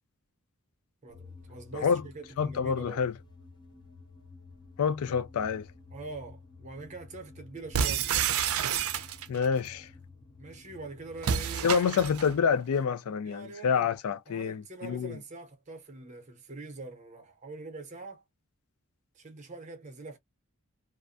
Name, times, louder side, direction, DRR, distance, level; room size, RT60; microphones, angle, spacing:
voice 1, 1.0-3.1 5.9-8.2 10.4-11.7 13.2-13.9 14.3-18.2 19.1-20.2, right 3 dB, 35° right, 0.7 m, -44 dB
sound 1, 1.1-11.9, left 3 dB, 20° left, 0.5 m, -52 dB
voice 2, 2.4-3.1 4.8-5.7 9.3-9.9 11.6-15.2, left 6 dB, 80° left, 0.4 m, -27 dB
sound 2, 7.7-9.5 11.2-12.3, right 8 dB, 70° right, 0.5 m, -29 dB
2.4 x 2.1 x 2.5 m
head